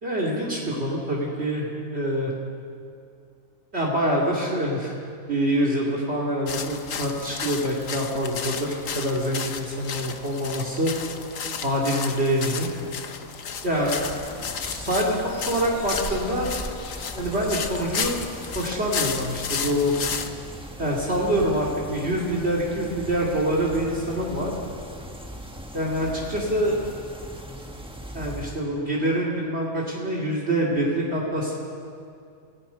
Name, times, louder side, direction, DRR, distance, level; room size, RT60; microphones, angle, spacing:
voice 1, 0.0-2.3 3.7-4.9 5.3-10.9 11.6-12.7 13.6-14.0 14.6-16.5 17.2-18.2 18.5-19.9 20.8-24.5 25.7-26.8 28.1-31.5, equal, 45° right, -3 dB, 2.8 m, -25 dB
sound 1, 6.5-20.3, left 7 dB, 70° left, 1.4 m, -33 dB
sound 2, 13.5-28.6, equal, 5° right, 1.4 m, -39 dB
27.5 x 17.0 x 5.7 m, 2.4 s
omnidirectional pair, 1.5 m